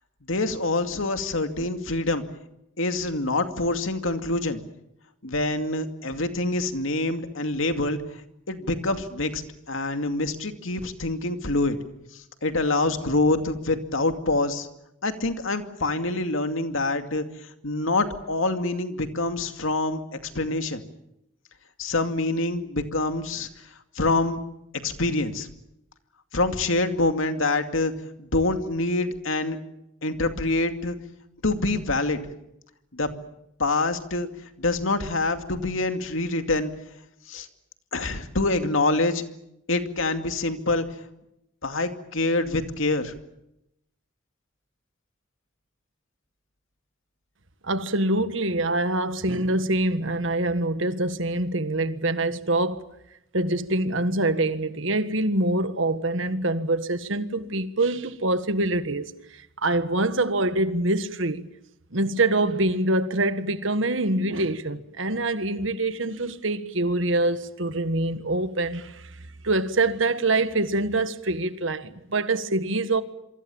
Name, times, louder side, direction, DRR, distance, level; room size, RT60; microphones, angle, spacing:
voice 1, 0.3-2.2 2.8-4.6 5.2-8.0 8.5-9.4 9.7-11.8 12.1-14.7 15.0-17.2 17.6-20.8 21.8-23.5 24.0-24.4 24.8-25.5 26.3-27.9 28.2-29.6 30.0-31.0 31.4-32.2 32.9-33.1 33.6-34.3 34.6-36.7 37.3-37.5 37.9-39.2 39.7-40.8 41.6-43.1, left 2 dB, 75° left, 2.4 m, -25 dB
voice 2, 47.6-52.9 53.3-61.5 61.9-69.2 69.4-73.0, right 2 dB, 70° right, 1.6 m, -25 dB
27.5 x 23.5 x 7.2 m
head